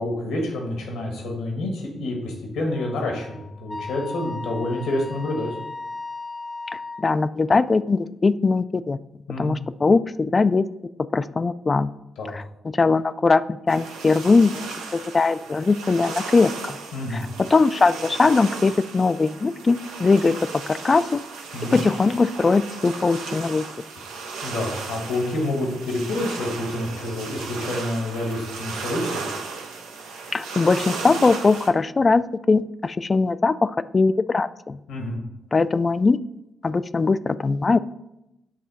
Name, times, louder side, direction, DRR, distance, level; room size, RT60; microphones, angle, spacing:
voice 1, 0.0-5.6 9.3-9.6 12.2-12.3 16.9-17.2 21.5-21.8 24.4-29.2 34.9-35.2, left 1 dB, 80° left, 1 dB, 1.4 m, -28 dB
Wind instrument woodwind instrument, 2.7-7.1, left 3 dB, 20° left, 0.7 m, -36 dB
voice 2, 7.0-9.0 9.4-10.7 11.1-11.9 12.3-14.6 14.9-16.8 17.1-21.2 21.7-23.6 30.3-34.8 35.5-36.2 36.6-37.8, left 4 dB, 40° left, 14 dB, 0.3 m, -20 dB
sound 1, 13.7-31.7, right 4 dB, 85° right, 0.7 m, -35 dB
8.8 x 3.1 x 4.1 m, 0.87 s
hypercardioid pair, 45°, 0 cm